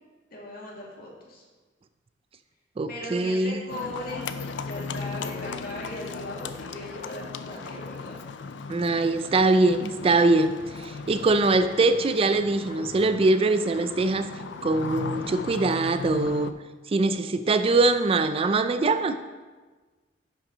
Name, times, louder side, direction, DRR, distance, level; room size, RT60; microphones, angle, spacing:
voice 1, 0.3-1.4 2.9-4.3 4.6-8.2, left 1 dB, 55° left, -3 dB, 2.3 m, -38 dB
voice 2, 2.8-3.6 8.7-14.3 14.6-16.5 16.9-19.2, right 3 dB, 30° right, 10 dB, 0.3 m, -23 dB
Livestock farm animals working animals, 3.7-16.5, left 4 dB, 80° left, 0.5 m, -37 dB
10.5 x 6.0 x 3.9 m, 1.3 s
head